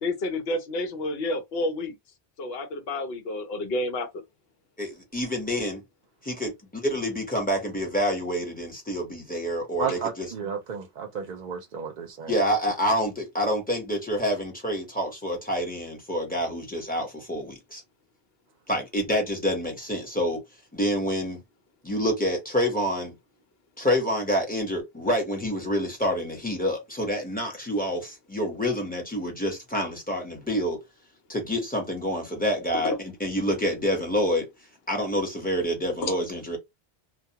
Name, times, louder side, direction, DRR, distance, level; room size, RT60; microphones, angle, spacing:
voice 1, 0.0-1.9 2.4-4.1 32.8-32.9 36.0-36.1, left 2 dB, 75° left, 0.9 m, -29 dB
voice 2, 4.8-5.8 6.2-6.5 6.8-10.3 12.3-17.8 18.7-20.4 20.7-21.4 21.8-23.2 23.8-30.8 31.3-34.5 34.9-36.6, equal, 10° left, 0.9 m, -27 dB
voice 3, 9.8-12.3, right 7 dB, 60° right, 0.6 m, -33 dB
2.3 x 2.2 x 2.8 m
omnidirectional pair, 1.0 m